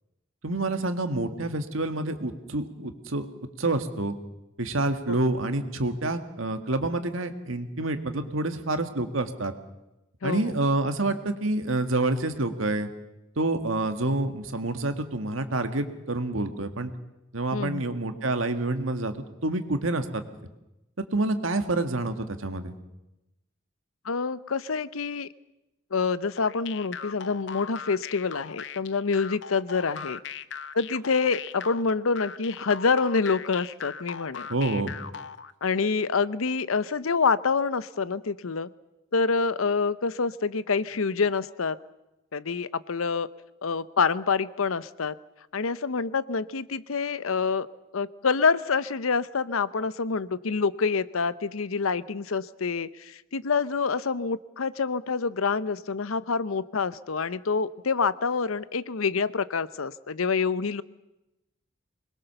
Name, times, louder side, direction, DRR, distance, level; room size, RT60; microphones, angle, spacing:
voice 1, 0.4-3.3 3.6-4.2 4.6-9.5 10.2-12.9 13.4-16.9 17.3-19.1 19.4-20.2 21.0-22.8 34.5-34.9, right 2 dB, 75° right, 8 dB, 1.8 m, -28 dB
voice 2, 10.2-10.5 17.5-17.9 24.0-25.3 25.9-30.2 30.7-34.5 35.6-38.7 39.1-41.8 42.3-43.3 43.6-45.2 45.5-47.7 47.9-60.8, left 5 dB, 90° left, 16 dB, 0.8 m, -27 dB
sound 1, 26.4-35.5, left 7 dB, 60° left, 0.7 m, -39 dB
24.0 x 21.5 x 6.8 m, 0.95 s
head